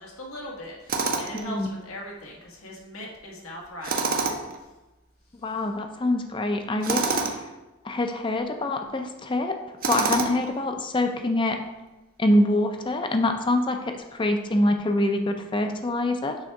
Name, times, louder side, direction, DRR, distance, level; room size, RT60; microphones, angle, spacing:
voice 1, 0.0-4.5 10.3-10.4, left 1 dB, 90° left, -2 dB, 1.5 m, -40 dB
Tools, 0.9-1.5 3.8-4.6 6.8-7.4 9.8-10.5, right 4 dB, 40° right, 0.5 m, -26 dB
voice 2, 1.3-1.7 5.4-7.5 7.8-9.6 9.9-11.6 12.2-16.4, left 1 dB, 25° left, 5 dB, 0.4 m, -25 dB
6.3 x 3.4 x 4.7 m, 1.1 s
head